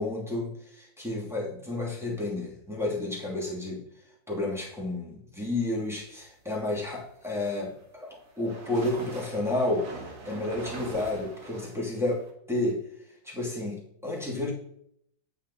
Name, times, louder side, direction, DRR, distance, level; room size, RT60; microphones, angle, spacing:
voice 1, 0.0-3.8 4.3-12.9 13.2-14.5, left 2 dB, ahead, -4 dB, 2.8 m, -31 dB
sound 1, 7.2-12.3, right 3 dB, 55° right, 2.4 m, -43 dB
9.6 x 8.9 x 4.2 m, 0.70 s
omnidirectional pair, 2.0 m